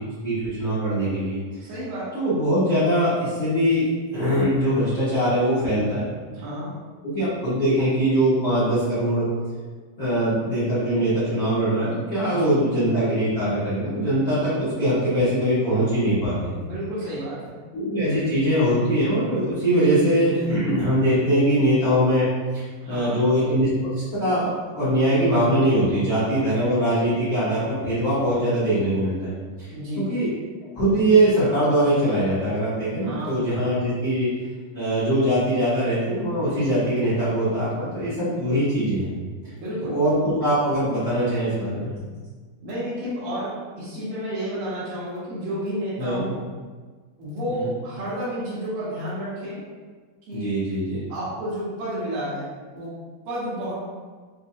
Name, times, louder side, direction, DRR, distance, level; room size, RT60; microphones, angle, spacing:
voice 1, 0.2-1.4 2.1-3.8 4.1-6.0 7.0-9.2 10.0-16.5 17.7-22.2 22.5-23.7 24.1-29.3 29.6-29.7 30.0-30.3 30.7-34.3 34.7-39.1 39.8-41.9 46.0-46.2 47.5-47.7 50.3-51.0, right 1 dB, 75° left, -13 dB, 0.8 m, -22 dB
voice 2, 1.6-2.1 6.3-6.7 12.3-12.5 16.6-17.6 22.8-23.2 29.7-30.0 33.0-33.3 39.6-40.0 42.6-46.4 47.2-49.6 50.3-50.5 51.1-52.5 52.7-52.9 53.3-53.7, equal, 70° right, -12 dB, 2.7 m, -31 dB
6.4 x 2.3 x 2.8 m, 1.5 s
omnidirectional pair, 4.2 m